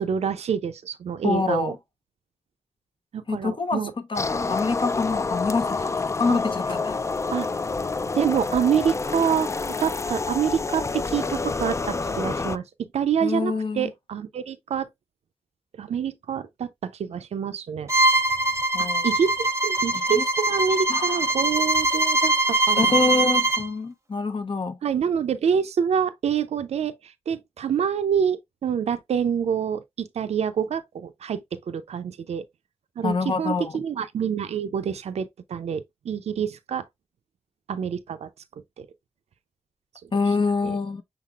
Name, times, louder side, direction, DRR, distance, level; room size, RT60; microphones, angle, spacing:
voice 1, 0.0-1.7 3.1-3.9 6.2-6.4 7.3-7.5 8.1-9.5 9.8-12.6 12.9-14.9 15.8-17.9 18.8-23.3 24.8-32.4 33.0-36.9 37.7-38.3 38.8-38.9 40.6-40.8, right 7 dB, 85° right, 0.4 m, -27 dB
voice 2, 1.2-1.8 3.3-5.8 6.2-7.0 13.2-13.9 18.7-19.1 20.2-20.3 20.9-21.3 22.8-24.8 33.0-33.8 40.1-41.0, left 4 dB, 50° left, 0.8 m, -26 dB
sound 1, 4.2-12.6, left 4 dB, 25° left, 0.3 m, -28 dB
Bowed string instrument, 17.9-23.7, right 2 dB, 25° right, 0.7 m, -22 dB
5.8 x 4.0 x 2.3 m
cardioid pair, 45°, 11 cm